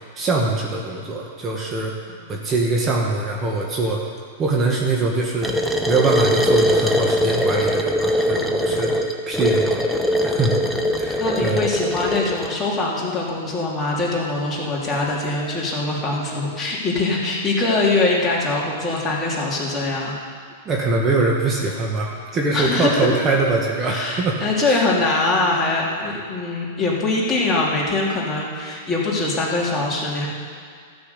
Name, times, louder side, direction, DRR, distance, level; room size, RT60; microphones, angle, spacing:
voice 1, 0.2-1.9 2.3-4.0 4.4-5.5 5.9-8.9 9.3-9.8 10.2-10.6 11.0-11.6 14.9-15.0 15.4-15.6 16.3-16.5 20.7-24.4 24.6-24.9, right 3 dB, 25° right, -2 dB, 1.8 m, -23 dB
sound 1, 5.4-12.5, equal, ahead, 1.0 m, -21 dB
voice 2, 8.6-8.9 10.6-10.8 11.2-20.2 22.5-23.1 23.8-30.3, left 2 dB, 20° left, -4 dB, 3.1 m, -23 dB
13.5 x 6.3 x 8.2 m, 2.2 s
hypercardioid pair, 115°, 0 cm